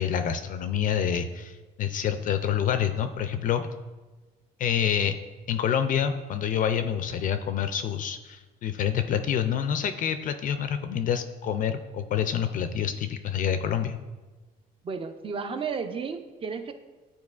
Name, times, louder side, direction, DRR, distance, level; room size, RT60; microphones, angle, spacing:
voice 1, 0.0-3.7 4.6-5.2 5.5-14.0, left 8 dB, 50° left, 9 dB, 0.4 m, -27 dB
voice 2, 14.8-16.7, right 5 dB, 30° right, 8 dB, 0.5 m, -33 dB
9.4 x 4.3 x 2.4 m, 1.2 s
cardioid pair, 110°, 17 cm